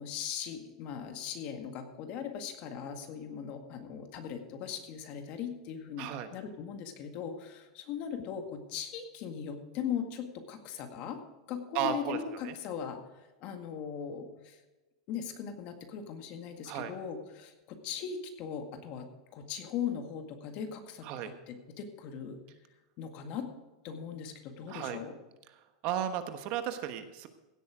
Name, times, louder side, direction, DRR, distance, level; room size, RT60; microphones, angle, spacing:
voice 1, 0.0-11.2 11.5-14.6 15.1-22.4 23.0-23.5 23.8-25.2, left 7 dB, 40° left, 5 dB, 1.8 m, -39 dB
voice 2, 6.0-6.3 11.7-12.2 12.4-12.5 16.7-16.9 21.0-21.3 24.7-25.0 25.8-27.3, right 9 dB, 45° right, 8 dB, 1.2 m, -34 dB
16.5 x 8.2 x 5.0 m, 1.1 s
supercardioid pair, 150°, 3 cm